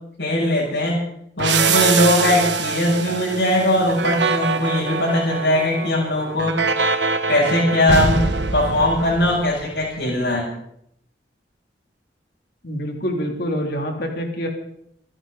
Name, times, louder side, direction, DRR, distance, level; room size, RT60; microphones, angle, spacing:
voice 1, 0.2-1.0 1.4-6.6 7.3-8.2 8.5-10.5, left 1 dB, 75° left, -5 dB, 7.0 m, -20 dB
sound 1, 1.4-9.9, right 4 dB, 80° right, 1.3 m, -23 dB
voice 2, 12.6-14.5, equal, 55° left, 2 dB, 3.0 m, -26 dB
27.0 x 12.0 x 4.0 m, 0.71 s
head